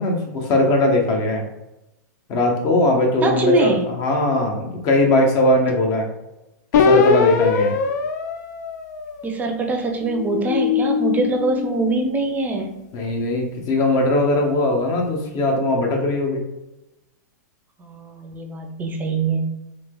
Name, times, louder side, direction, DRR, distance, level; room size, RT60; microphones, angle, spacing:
voice 1, 0.0-1.4 2.3-6.1 6.7-7.7 12.9-16.4, left 1 dB, 40° left, 1 dB, 0.8 m, -20 dB
voice 2, 3.2-3.8 9.2-12.7 17.9-19.5, right 2 dB, 15° right, 3 dB, 0.5 m, -23 dB
sound 1, 6.7-9.4 10.0-12.5, left 5 dB, 65° left, 0.4 m, -21 dB
3.2 x 2.9 x 2.2 m, 0.94 s
hypercardioid pair, 125°, 10 cm